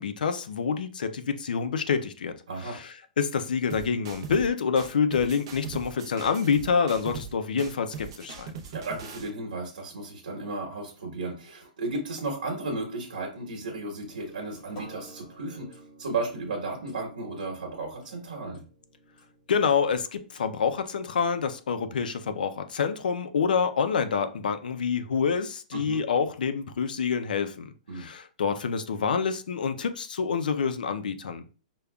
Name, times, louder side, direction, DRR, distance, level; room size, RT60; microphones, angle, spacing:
voice 1, 0.0-2.4 2.6-8.6 19.5-31.4, left 6 dB, 85° left, 0.5 m, -27 dB
voice 2, 2.5-2.8 8.7-18.6 25.7-26.0 27.9-28.1, right 2 dB, 70° right, 1.2 m, -34 dB
sound 1, 3.7-4.5 4.8-7.3 7.6-9.3, right 6 dB, 40° right, 0.6 m, -40 dB
sound 2, 14.1-21.6, right 1 dB, 25° left, 0.9 m, -53 dB
5.1 x 2.2 x 2.3 m
hypercardioid pair, 175°, 5 cm